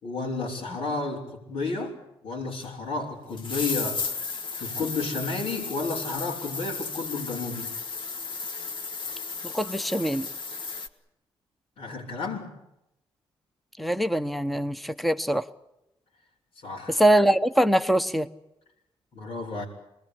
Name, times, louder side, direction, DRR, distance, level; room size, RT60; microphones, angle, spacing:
voice 1, 0.0-2.0 2.2-4.1 4.6-7.7 11.8-12.6 16.6-17.0 19.1-19.7, left 3 dB, 80° left, -3 dB, 6.0 m, -32 dB
sound 1, 2.6-2.7 3.3-10.9, left 4 dB, 55° left, 2.4 m, -34 dB
voice 2, 9.4-10.3 13.8-15.5 16.9-18.3, right 1 dB, ahead, 12 dB, 1.0 m, -23 dB
27.0 x 21.0 x 8.6 m, 0.88 s
cardioid pair, 130°, 10 cm